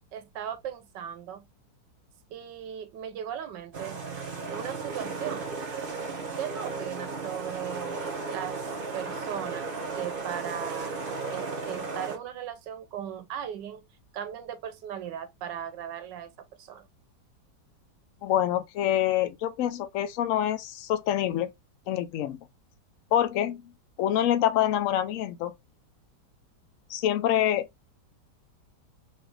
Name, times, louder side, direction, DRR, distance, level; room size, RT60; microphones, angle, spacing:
voice 1, 0.1-1.4 2.3-4.0 4.5-5.6 6.4-8.6 8.9-10.9 11.3-13.8 14.1-16.8, right 9 dB, 85° right, 1.4 m, -37 dB
sound 1, 3.7-12.2, right 4 dB, 40° right, 1.0 m, -35 dB
voice 2, 18.2-21.5 21.9-22.4 23.1-23.6 24.0-25.5 26.9-27.7, left 11 dB, 70° left, 0.8 m, -26 dB
4.2 x 2.7 x 3.3 m
omnidirectional pair, 1.9 m